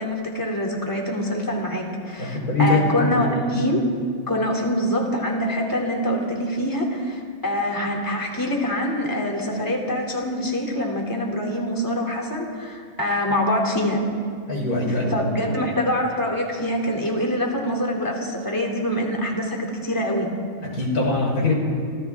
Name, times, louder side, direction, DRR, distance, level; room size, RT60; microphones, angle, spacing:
voice 1, 0.0-3.8 4.3-14.0 14.9-20.3, left 1 dB, 15° left, -1 dB, 3.0 m, -25 dB
voice 2, 2.2-3.3 14.5-15.5 20.6-21.6, left 2 dB, 80° left, -1 dB, 4.8 m, -23 dB
30.0 x 26.0 x 3.7 m, 2.1 s
omnidirectional pair, 1.6 m